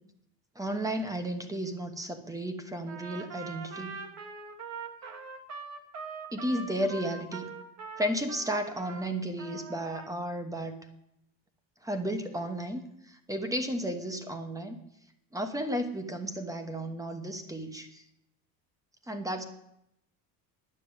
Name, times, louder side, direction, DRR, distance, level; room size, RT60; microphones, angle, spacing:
voice 1, 0.5-4.0 6.3-7.5 8.0-10.8 11.8-14.8 15.3-18.0 19.1-19.4, right 1 dB, 10° right, 8 dB, 1.1 m, -33 dB
Trumpet, 2.9-9.1 9.4-10.1, right 5 dB, 35° right, 1.5 m, -42 dB
9.9 x 6.8 x 8.7 m, 0.80 s
cardioid pair, 140°, 43 cm